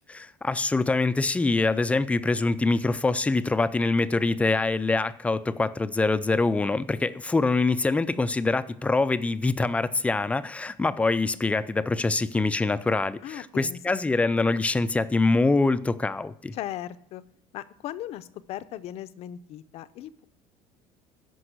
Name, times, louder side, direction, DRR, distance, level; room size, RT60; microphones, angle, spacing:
voice 1, 0.1-16.5, left 3 dB, 10° left, 0.4 m, -24 dB
voice 2, 13.2-14.0 16.5-17.2 17.5-20.2, left 12 dB, 50° left, 0.6 m, -38 dB
14.0 x 5.3 x 8.0 m
cardioid pair, 150°, 13 cm